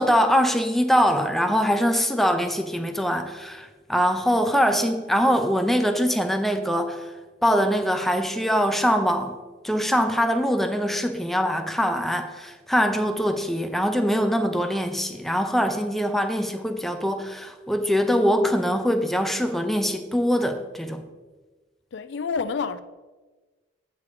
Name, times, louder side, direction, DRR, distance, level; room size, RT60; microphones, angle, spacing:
voice 1, 0.0-7.0 7.4-9.4 9.6-21.0, equal, ahead, 0.5 m, -23 dB
voice 2, 21.9-22.8, left 5 dB, 75° left, 0.4 m, -28 dB
8.2 x 5.1 x 4.8 m
head